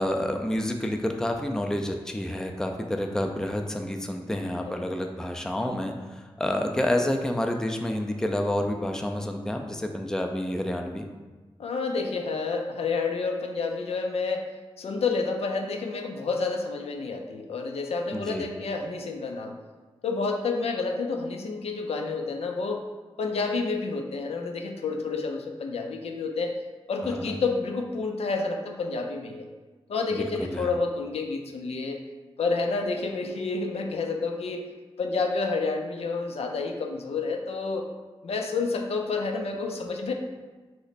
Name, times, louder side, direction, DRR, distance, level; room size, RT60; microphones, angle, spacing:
voice 1, 0.0-11.1 18.1-18.4 27.0-27.4 30.1-30.7, left 1 dB, 5° left, 4 dB, 0.3 m, -29 dB
voice 2, 11.6-19.6 20.0-22.9 23.2-26.6 26.9-29.5 29.9-32.0 32.4-37.9 38.2-40.1, left 4 dB, 85° left, 3 dB, 0.4 m, -29 dB
3.1 x 2.0 x 4.0 m, 1.3 s
wide cardioid pair, 65°, 10 cm